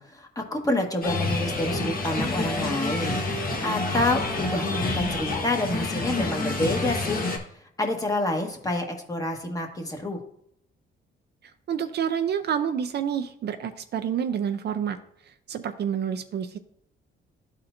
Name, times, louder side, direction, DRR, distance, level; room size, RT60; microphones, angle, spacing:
voice 1, 0.0-7.2 7.8-10.2, left 1 dB, 15° left, 2 dB, 1.4 m, -28 dB
sound 1, 1.0-7.4, left 3 dB, 45° left, 1.3 m, -28 dB
voice 2, 11.7-15.0 15.3-16.6, right 8 dB, 55° right, 7 dB, 0.5 m, -28 dB
12.5 x 4.3 x 2.6 m, 0.73 s
cardioid pair, 90°, 20 cm